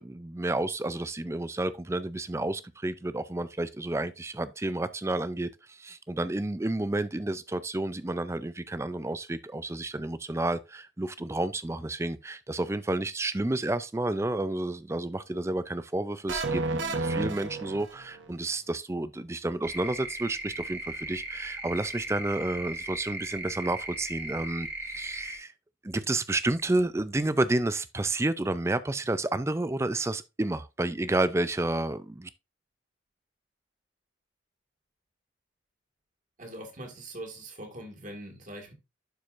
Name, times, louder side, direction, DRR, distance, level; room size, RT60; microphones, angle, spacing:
voice 1, 0.0-25.5 25.8-32.3, right 2 dB, 15° right, 0.4 m, -30 dB
sound 1, 16.3-18.3, right 3 dB, 80° right, 1.0 m, -31 dB
sound 2, 19.6-25.4, right 2 dB, 65° right, 1.9 m, -37 dB
voice 2, 36.4-38.7, right 1 dB, 40° right, 1.8 m, -42 dB
11.5 x 4.7 x 2.5 m
head